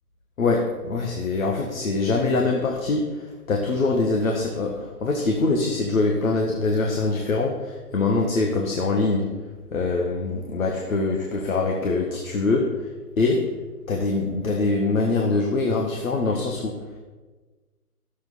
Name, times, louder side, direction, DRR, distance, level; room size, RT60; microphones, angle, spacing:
voice 1, 0.4-9.4 9.7-12.9 13.2-13.5 13.9-16.8, left 3 dB, 55° left, 1 dB, 1.5 m, -24 dB
11.0 x 7.5 x 5.5 m, 1.3 s
figure-of-eight pair, 145°, 47 cm